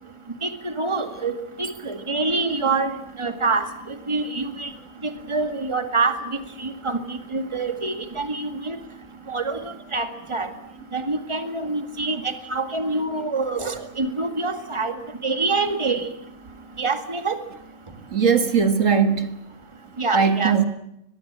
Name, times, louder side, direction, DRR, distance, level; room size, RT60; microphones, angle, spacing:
voice 1, 0.4-2.9 3.2-3.7 4.1-4.7 5.3-6.2 6.6-8.8 9.3-10.5 10.9-14.9 15.2-16.1 16.8-17.4 20.0-20.6, right 3 dB, 20° right, 2.1 m, -26 dB
voice 2, 18.1-19.3 20.1-20.6, right 6 dB, 65° right, 2.2 m, -19 dB
24.5 x 21.0 x 8.8 m
omnidirectional pair, 1.4 m